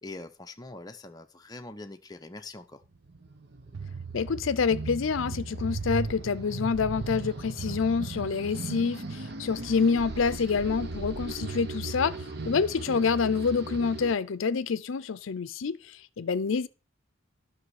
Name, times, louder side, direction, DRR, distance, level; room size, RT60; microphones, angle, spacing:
voice 1, 0.0-2.8, left 2 dB, 20° left, 0.7 m, -43 dB
sound 1, 2.8-14.1, right 2 dB, 55° right, 0.9 m, -38 dB
sound 2, 3.7-13.5, right 5 dB, 80° right, 0.5 m, -41 dB
voice 2, 4.1-16.7, left 5 dB, 80° left, 0.5 m, -27 dB
11.5 x 6.2 x 4.8 m
head